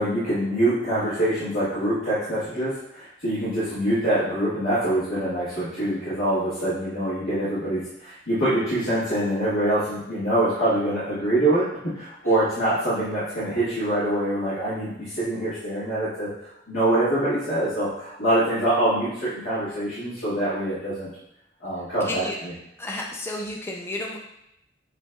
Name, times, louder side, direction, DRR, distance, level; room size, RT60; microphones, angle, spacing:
voice 1, 0.0-11.7 11.9-16.3 16.7-21.1 21.6-22.5, right 1 dB, 80° left, -12 dB, 1.6 m, -24 dB
voice 2, 22.0-22.4 22.8-24.2, left 1 dB, 15° left, -1 dB, 0.5 m, -32 dB
8.0 x 2.7 x 2.3 m, 0.81 s
head